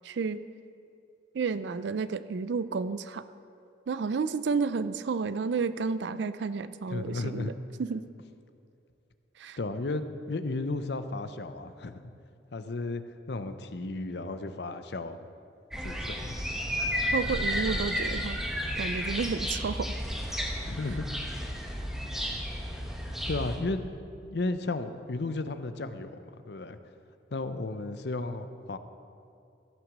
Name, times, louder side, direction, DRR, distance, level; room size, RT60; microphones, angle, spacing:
voice 1, 0.0-0.4 1.3-3.2 3.9-7.5 7.8-8.1 9.4-9.6 17.1-18.4 18.8-19.9, right 5 dB, 75° right, 13 dB, 0.4 m, -31 dB
voice 2, 6.9-7.5 9.6-12.0 12.5-13.0 13.3-15.3 15.8-16.4 20.6-21.2 23.3-23.8 24.2-26.1 26.5-26.8 27.3-28.8, left 2 dB, 65° left, 11 dB, 0.6 m, -34 dB
sound 1, 15.7-23.6, equal, ahead, 1.2 m, -32 dB
15.0 x 6.1 x 7.3 m, 2.6 s
head